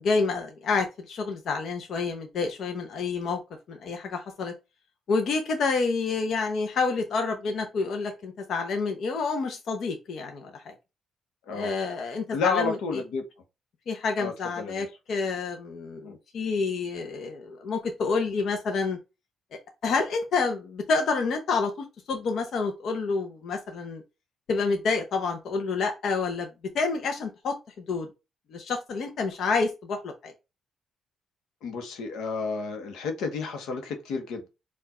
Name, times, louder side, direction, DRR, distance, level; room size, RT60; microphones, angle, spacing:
voice 1, 0.0-3.4 3.7-4.5 5.1-10.7 11.5-12.8 13.9-19.0 19.8-24.0 24.5-26.5 26.7-27.5 27.9-28.1 28.5-30.3, left 4 dB, 65° left, 0.8 m, -28 dB
voice 2, 12.3-13.2 14.2-14.9 16.0-16.1 31.6-34.5, left 4 dB, 85° left, 1.0 m, -31 dB
4.5 x 2.5 x 4.2 m
cardioid pair, 90°, 0 cm